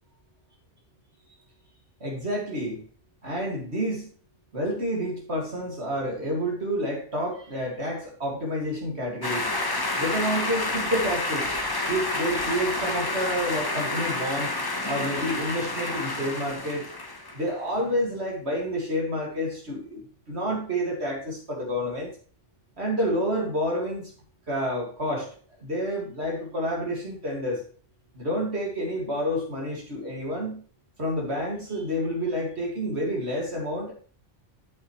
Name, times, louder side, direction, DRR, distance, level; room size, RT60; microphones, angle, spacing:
voice 1, 2.0-2.8 3.2-4.1 4.5-9.5 10.0-11.5 11.9-14.5 14.9-16.9 17.3-20.0 20.3-22.1 22.8-24.1 24.5-25.3 25.6-27.6 28.2-30.6 31.0-33.9, equal, 65° right, -2 dB, 2.5 m, -29 dB
sound 1, 9.2-17.5, left 2 dB, 20° left, 1.0 m, -29 dB
11.5 x 6.4 x 3.1 m, 0.42 s
omnidirectional pair, 1.2 m